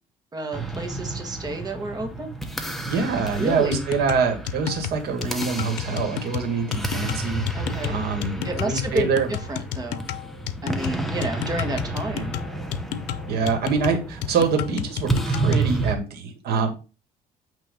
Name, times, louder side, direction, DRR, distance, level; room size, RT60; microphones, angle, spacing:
voice 1, 0.3-2.3 3.4-3.8 7.5-8.0 8.4-10.1 10.6-12.3, right 2 dB, 25° right, 4 dB, 1.5 m, -30 dB
sound 1, 0.5-15.9, right 2 dB, ahead, 1.0 m, -31 dB
voice 2, 2.9-9.3 13.3-16.7, right 5 dB, 70° right, 4 dB, 2.0 m, -25 dB
sound 2, 3.7-15.7, left 11 dB, 90° left, 0.6 m, -32 dB
8.8 x 3.0 x 5.2 m, 0.32 s
cardioid pair, 125°, 17 cm